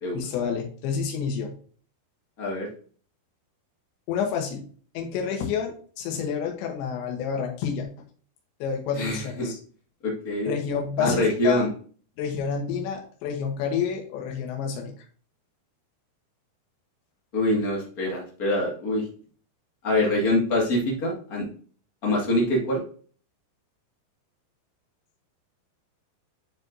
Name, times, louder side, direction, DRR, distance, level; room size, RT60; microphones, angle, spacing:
voice 1, 0.1-1.5 4.1-4.6 4.9-7.9 8.6-9.6 10.5-11.6 12.2-14.9, left 7 dB, 90° left, 2 dB, 3.4 m, -29 dB
voice 2, 2.4-2.7 9.0-9.5 10.0-10.5 11.0-11.7 17.3-19.1 19.8-21.5 22.0-22.8, left 1 dB, 60° left, -2 dB, 0.9 m, -25 dB
10.5 x 4.6 x 2.6 m, 0.44 s
omnidirectional pair, 5.1 m